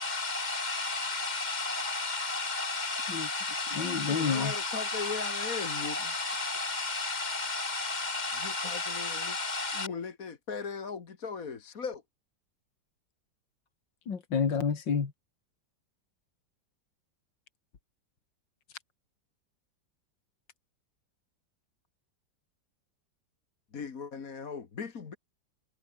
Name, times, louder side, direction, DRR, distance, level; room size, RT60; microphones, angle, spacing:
voice 1, 0.0-9.9, left 3 dB, 25° right, 1.4 m, -33 dB
voice 2, 3.1-4.5 14.1-15.1, left 6 dB, 80° left, 3.0 m, -30 dB
voice 3, 4.1-6.1 8.4-9.4 9.7-12.0 23.7-25.2, left 5 dB, 50° left, 2.1 m, -38 dB
omnidirectional pair, 2.0 m